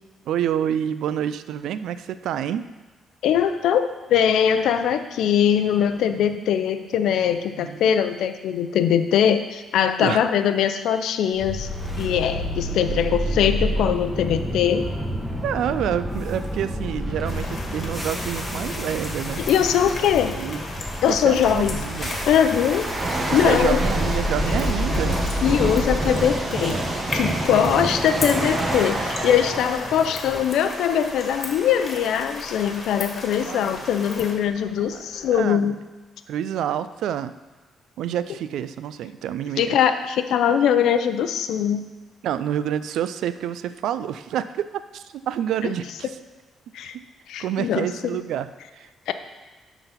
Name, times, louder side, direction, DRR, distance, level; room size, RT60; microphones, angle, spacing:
voice 1, 0.3-2.6 6.4-6.5 7.6-7.9 10.0-10.2 15.4-19.4 20.3-20.6 21.1-22.2 23.3-25.2 27.4-27.8 33.4-33.6 34.6-35.0 35.3-35.7 36.3-37.3 38.0-39.8 42.2-44.7 44.9-46.1 46.9-47.0 47.4-48.9, right 10 dB, 80° right, 13 dB, 0.4 m, -28 dB
voice 2, 3.2-11.7 11.9-14.9 19.4-20.3 21.0-23.8 25.4-26.8 27.1-35.8 39.6-41.8 45.6-45.7 46.7-46.9 47.3-47.9 49.1-49.2, left 9 dB, 80° left, 9 dB, 0.6 m, -21 dB
sound 1, 11.4-29.5, equal, ahead, 1.4 m, -29 dB
sound 2, 17.2-34.3, left 2 dB, 40° left, 1.7 m, -36 dB
sound 3, 18.3-18.5 19.6-19.7 20.5-31.9 32.5-32.7 33.5-33.6 33.8-35.4, right 2 dB, 30° right, 1.4 m, -29 dB
11.5 x 4.0 x 5.8 m, 1.2 s
cardioid pair, 90°, 0 cm